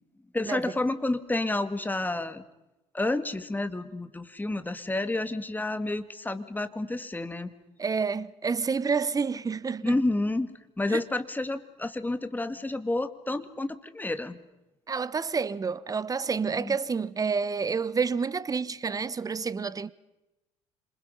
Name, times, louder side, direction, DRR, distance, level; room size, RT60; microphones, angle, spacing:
voice 1, 0.3-2.4 2.9-7.5 9.8-10.5 10.8-14.4 16.6-16.8, left 2 dB, 10° left, 2.1 m, -30 dB
voice 2, 7.8-10.0 10.9-11.0 14.9-19.9, right 5 dB, 25° right, 1.1 m, -29 dB
27.5 x 26.5 x 5.7 m
figure-of-eight pair, 60°, 15 cm